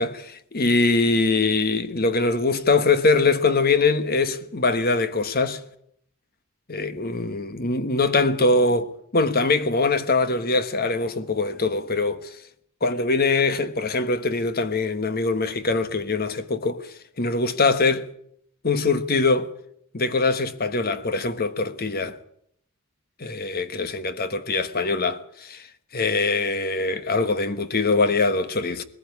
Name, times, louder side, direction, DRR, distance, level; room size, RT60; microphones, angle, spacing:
voice 1, 0.0-5.6 6.7-12.3 12.8-18.1 18.6-19.5 19.9-22.2 23.2-25.6 25.9-28.8, left 3 dB, 45° left, 1.3 m, -23 dB
20.0 x 15.5 x 9.7 m
head